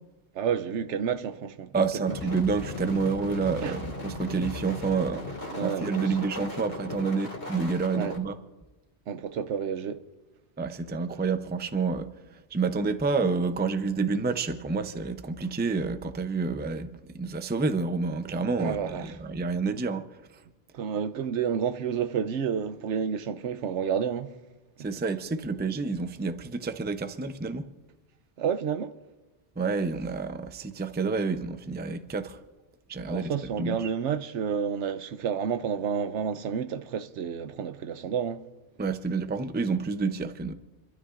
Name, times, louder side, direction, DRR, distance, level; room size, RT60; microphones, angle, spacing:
voice 1, 0.3-2.2 3.6-3.8 5.5-6.3 7.9-8.1 9.1-10.0 18.6-19.2 20.7-24.4 28.4-28.9 33.1-38.4, right 7 dB, 80° right, 1.0 m, -30 dB
voice 2, 1.7-8.3 10.6-20.4 24.8-27.7 29.6-32.4 32.9-33.3 33.6-33.9 38.8-40.5, right 4 dB, 15° right, 0.4 m, -29 dB
sound 1, 2.0-8.2, left 2 dB, 70° left, 2.4 m, -37 dB
28.5 x 12.5 x 2.5 m
omnidirectional pair, 1.2 m